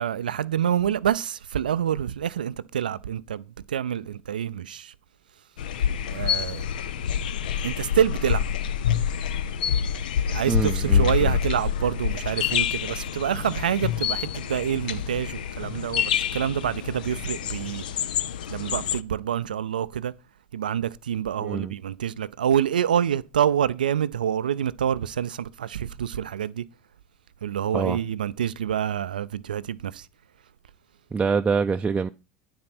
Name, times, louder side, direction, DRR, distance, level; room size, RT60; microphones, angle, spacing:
voice 1, 0.0-4.9 6.1-6.7 7.6-8.4 10.3-17.8 18.5-20.1 20.5-26.6 27.4-30.1, right 9 dB, 90° right, 0.4 m, -27 dB
sound 1, 5.6-19.0, left 8 dB, 80° left, 0.5 m, -27 dB
voice 2, 10.5-11.4 21.4-21.7 27.7-28.0 31.1-32.1, right 5 dB, 20° right, 0.5 m, -25 dB
9.4 x 4.3 x 5.9 m
hypercardioid pair, 85°, 5 cm